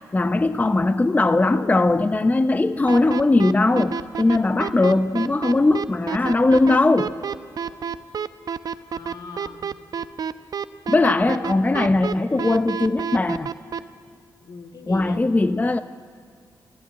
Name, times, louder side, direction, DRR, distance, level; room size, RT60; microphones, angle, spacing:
voice 1, 0.1-7.1 10.9-13.5 14.9-15.8, left 2 dB, 20° left, 11 dB, 0.7 m, -19 dB
sound 1, 2.9-13.8, right 7 dB, 65° right, 0.8 m, -28 dB
voice 2, 8.9-9.7 10.9-11.7 14.4-15.2, left 5 dB, 70° left, 4 dB, 2.1 m, -39 dB
23.5 x 14.5 x 9.9 m, 2.1 s
cardioid pair, 65°, 7 cm